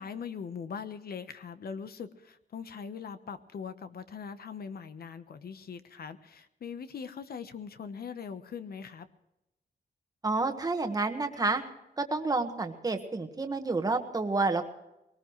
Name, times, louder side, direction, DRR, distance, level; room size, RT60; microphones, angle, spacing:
voice 1, 0.0-9.1, left 6 dB, 65° left, 11 dB, 1.0 m, -41 dB
voice 2, 10.2-11.6 12.0-14.6, right 3 dB, 20° right, 6 dB, 1.4 m, -29 dB
21.5 x 19.0 x 3.1 m, 0.91 s
wide cardioid pair, 155°, 17 cm